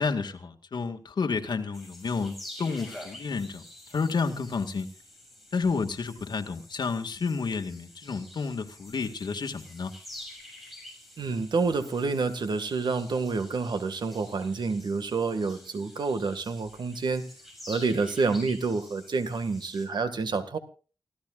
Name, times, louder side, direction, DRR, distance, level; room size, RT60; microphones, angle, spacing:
voice 1, 0.0-3.6 3.9-4.9 5.5-9.9, left 4 dB, 75° left, 5 dB, 2.0 m, -30 dB
sound 1, 1.7-19.9, left 1 dB, ahead, 6.2 m, -48 dB
voice 2, 11.2-17.3 17.7-20.6, right 4 dB, 80° right, 9 dB, 1.9 m, -28 dB
29.5 x 16.0 x 2.5 m, 0.37 s
wide cardioid pair, 125°, 8 cm